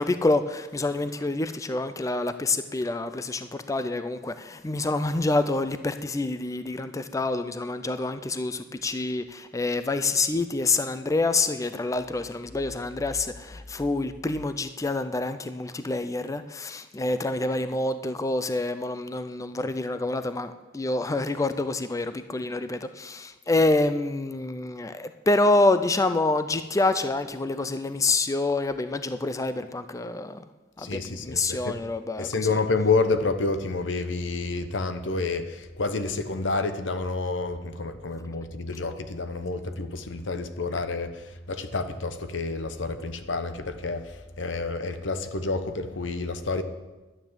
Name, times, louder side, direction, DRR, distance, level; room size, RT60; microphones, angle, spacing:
voice 1, 0.0-30.4 30.8-32.5, left 2 dB, 15° left, 0.4 m, -27 dB
voice 2, 30.8-31.8 32.2-46.6, left 3 dB, 75° left, 0.9 m, -29 dB
11.0 x 9.5 x 7.4 m
head